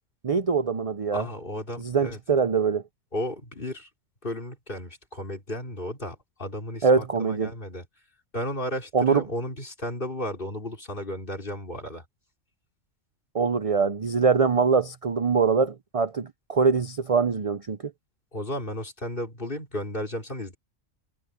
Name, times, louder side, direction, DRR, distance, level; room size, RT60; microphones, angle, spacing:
voice 1, 0.2-1.3 1.8-2.8 6.8-7.5 8.9-9.2 13.3-17.8, right 5 dB, 40° right, 0.5 m, -23 dB
voice 2, 1.1-2.2 3.1-3.9 4.2-7.9 8.3-12.0 18.3-20.6, left 1 dB, 45° left, 4.1 m, -34 dB
omnidirectional pair, 1.3 m